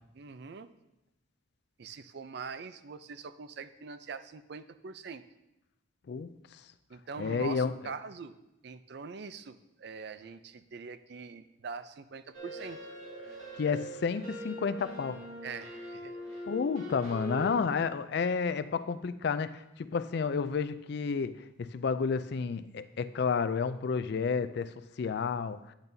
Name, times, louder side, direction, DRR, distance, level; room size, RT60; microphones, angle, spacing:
voice 1, 0.1-0.7 1.8-5.2 6.9-8.3 8.6-12.8 15.4-16.2 17.7-17.8, right 5 dB, 55° right, 0.4 m, -43 dB
voice 2, 6.1-6.6 7.2-7.7 13.5-15.2 16.5-25.7, left 5 dB, 50° left, 0.3 m, -31 dB
sound 1, 12.3-17.5, equal, 80° right, 2.2 m, -42 dB
10.5 x 8.7 x 2.7 m
head